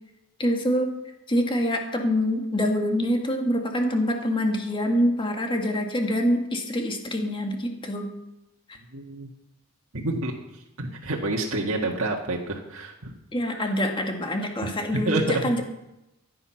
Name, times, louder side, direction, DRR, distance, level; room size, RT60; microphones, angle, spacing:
voice 1, 0.4-0.9 1.3-8.1 13.3-15.6, equal, 25° left, 3 dB, 1.9 m, -25 dB
voice 2, 8.9-9.3 9.9-10.3 10.8-13.1 13.6-13.7 14.9-15.6, right 2 dB, 70° right, -1 dB, 1.7 m, -28 dB
15.0 x 9.5 x 5.8 m, 0.92 s
head